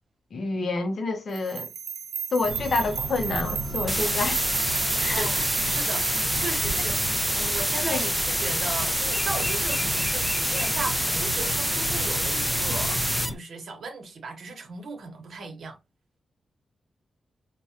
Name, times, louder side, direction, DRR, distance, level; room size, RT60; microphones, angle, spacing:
voice 1, 0.3-1.7 2.3-4.4 5.0-5.4 7.8-8.0, left 3 dB, 55° left, 0.6 m, -28 dB
sound 1, 1.3-10.4, right 8 dB, 80° right, 0.5 m, -35 dB
sound 2, 2.4-13.3, equal, 25° left, 1.0 m, -35 dB
sound 3, 3.9-13.3, equal, ahead, 0.4 m, -26 dB
voice 2, 5.1-7.0 7.3-13.0 13.3-15.8, right 3 dB, 60° right, 1.0 m, -36 dB
4.7 x 2.2 x 2.7 m
wide cardioid pair, 145°, 0 cm